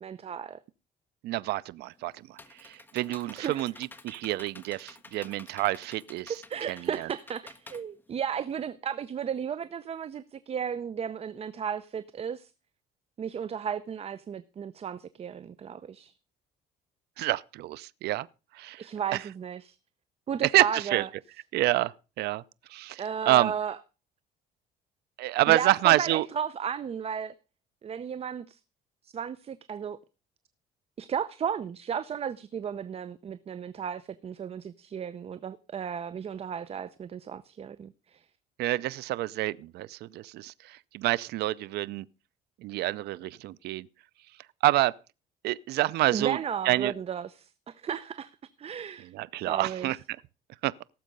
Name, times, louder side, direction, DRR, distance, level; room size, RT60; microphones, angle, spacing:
voice 1, 0.0-0.6 3.4-3.6 6.5-12.5 13.2-16.1 18.8-19.8 20.3-21.1 23.0-23.8 25.5-27.3 27.8-28.6 29.0-30.0 31.0-38.2 46.1-48.3 48.6-49.1 49.4-49.9, right 7 dB, 35° right, 0.7 m, -34 dB
voice 2, 1.2-6.4 6.7-7.1 17.2-18.3 18.5-18.8 19.1-19.2 20.4-21.0 21.5-22.4 22.7-23.5 25.2-26.3 38.6-42.1 42.6-43.9 44.6-45.0 45.4-46.4 46.6-46.9 49.1-50.0 50.6-50.7, right 16 dB, 75° right, 0.6 m, -28 dB
Computer keyboard, 1.8-8.7, left 3 dB, 10° left, 1.3 m, -51 dB
17.5 x 7.5 x 5.3 m
cardioid pair, 110°, 17 cm